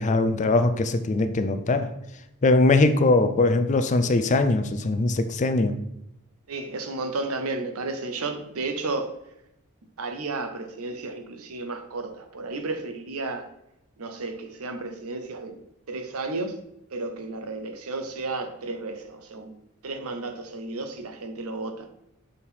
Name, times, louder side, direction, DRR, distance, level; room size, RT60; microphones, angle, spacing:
voice 1, 0.0-1.9 2.4-5.8, left 2 dB, 35° left, 9 dB, 0.4 m, -21 dB
voice 2, 6.5-9.2 10.0-13.5 14.0-15.6 15.9-16.6 16.9-19.5 19.8-21.9, right 3 dB, 75° right, 7 dB, 0.8 m, -33 dB
6.4 x 3.6 x 4.3 m, 0.83 s
head